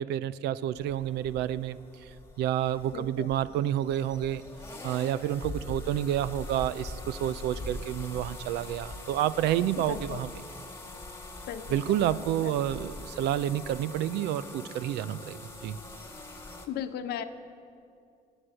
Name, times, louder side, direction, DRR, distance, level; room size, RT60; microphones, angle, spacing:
voice 1, 0.0-1.8 2.4-4.4 4.8-10.3 11.7-15.8, right 11 dB, 80° right, 17 dB, 0.5 m, -29 dB
sound 1, 0.8-16.7, left 2 dB, 15° left, 1.6 m, -43 dB
voice 2, 2.9-3.3 9.9-10.2 11.5-12.6 16.7-17.2, left 9 dB, 75° left, 9 dB, 0.9 m, -37 dB
21.0 x 8.1 x 7.6 m, 2.4 s
cardioid pair, 110°, 17 cm